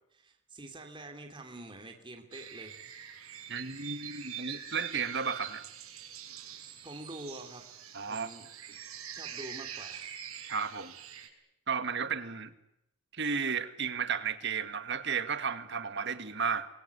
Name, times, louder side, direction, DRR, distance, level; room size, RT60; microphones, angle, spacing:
voice 1, 0.1-2.8 6.8-7.7 8.1-8.5 9.1-10.1, right 1 dB, 20° right, 3.1 m, -46 dB
sound 1, 2.3-11.3, right 9 dB, 75° right, 6.8 m, -44 dB
voice 2, 3.5-5.7 7.9-8.3 10.5-10.9 11.7-12.5 13.1-16.7, right 6 dB, 50° right, 2.0 m, -33 dB
29.5 x 23.5 x 8.3 m
head